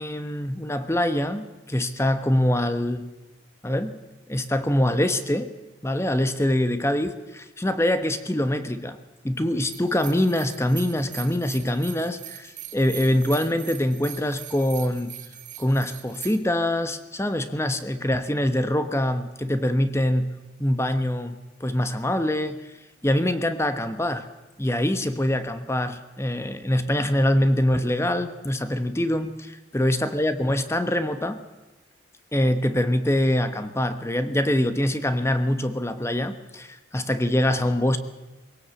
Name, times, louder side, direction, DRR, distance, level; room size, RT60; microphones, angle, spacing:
voice 1, 0.0-3.1 3.6-4.0 4.3-5.5 5.8-9.0 9.2-15.1 15.6-20.3 20.6-22.6 23.0-24.3 24.6-31.4 32.3-38.0, left 1 dB, 15° left, 10 dB, 1.0 m, -24 dB
sound 1, 9.7-16.4, right 12 dB, 40° right, 2.0 m, -41 dB
22.0 x 17.0 x 8.2 m, 1.1 s
head